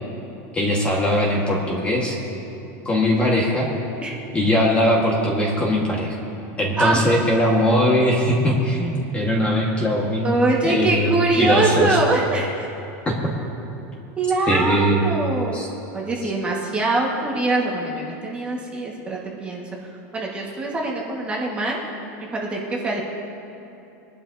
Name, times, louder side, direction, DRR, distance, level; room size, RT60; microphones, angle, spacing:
voice 1, 0.5-2.2 2.8-3.7 4.3-6.2 6.6-10.3 10.6-11.1 11.4-12.0 13.0-13.3 14.5-15.0 15.5-15.7 16.2-16.3, equal, 15° left, -2 dB, 1.5 m, -20 dB
voice 2, 6.8-7.1 10.2-12.7 14.2-15.6 15.9-19.7 20.1-21.8 22.3-23.0, right 2 dB, 15° right, -3 dB, 1.6 m, -23 dB
23.0 x 11.5 x 2.7 m, 2.8 s
supercardioid pair, 170°, 9 cm